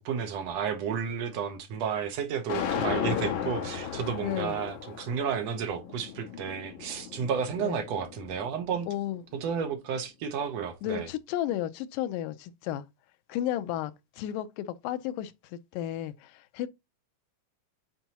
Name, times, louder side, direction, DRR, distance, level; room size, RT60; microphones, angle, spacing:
voice 1, 0.0-8.9 9.3-11.1, right 7 dB, 70° right, 1.7 m, -32 dB
sound 1, 2.5-8.6, left 8 dB, 70° left, 2.7 m, -35 dB
voice 2, 4.2-4.6 7.6-7.8 8.9-9.2 10.8-12.9 13.3-16.7, left 12 dB, 85° left, 2.2 m, -33 dB
9.1 x 4.5 x 2.8 m
omnidirectional pair, 3.7 m